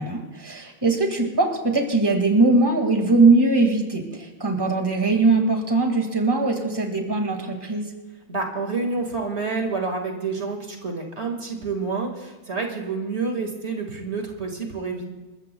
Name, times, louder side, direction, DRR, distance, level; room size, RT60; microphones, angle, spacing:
voice 1, 0.0-7.9, right 3 dB, 20° right, 3 dB, 1.9 m, -21 dB
voice 2, 8.3-15.0, right 4 dB, 65° right, 3 dB, 2.1 m, -28 dB
29.0 x 14.0 x 2.2 m, 1.2 s
omnidirectional pair, 1.3 m